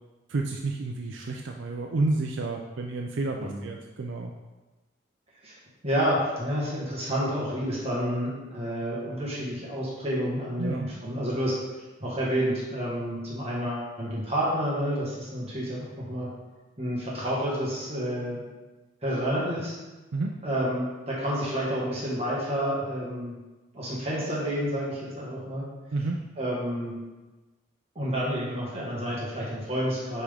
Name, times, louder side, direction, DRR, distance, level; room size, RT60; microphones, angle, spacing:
voice 1, 0.3-4.3 10.6-10.9 20.1-20.3 25.9-26.2, right 2 dB, 75° right, 1 dB, 0.5 m, -30 dB
voice 2, 5.8-11.6 12.0-16.3 16.8-18.4 19.0-19.7 20.4-23.4 23.7-25.6 26.4-26.9 27.9-30.2, equal, 30° right, -7 dB, 1.6 m, -29 dB
9.4 x 3.7 x 3.5 m, 1.1 s
head